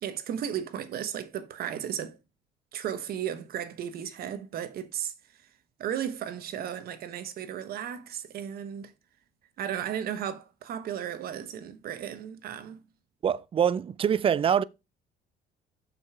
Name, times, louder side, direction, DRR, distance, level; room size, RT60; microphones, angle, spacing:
voice 1, 0.0-2.2 2.7-5.1 5.8-8.9 9.6-12.8, right 9 dB, 65° right, 1.1 m, -35 dB
voice 2, 13.2-14.6, right 8 dB, 35° right, 0.4 m, -24 dB
7.2 x 5.3 x 4.8 m
cardioid pair, 110°, 17 cm